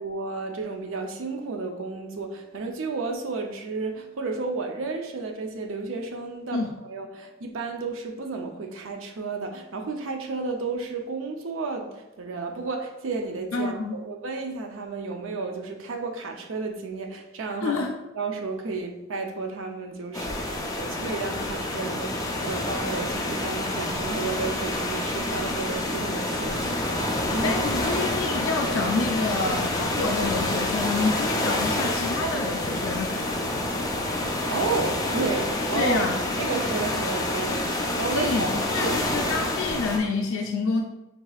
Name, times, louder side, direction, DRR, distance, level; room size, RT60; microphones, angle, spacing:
voice 1, 0.0-17.8 18.1-27.6 34.1-36.1 36.4-37.7 38.0-39.3, right 3 dB, 75° right, 3 dB, 0.5 m, -32 dB
voice 2, 13.5-14.0 17.6-18.0 27.4-33.1 35.7-36.2 38.1-40.8, left 3 dB, 80° left, 2 dB, 0.4 m, -28 dB
sound 1, 20.1-40.0, left 1 dB, 15° left, 0.5 m, -28 dB
4.8 x 3.6 x 2.3 m, 1.0 s
head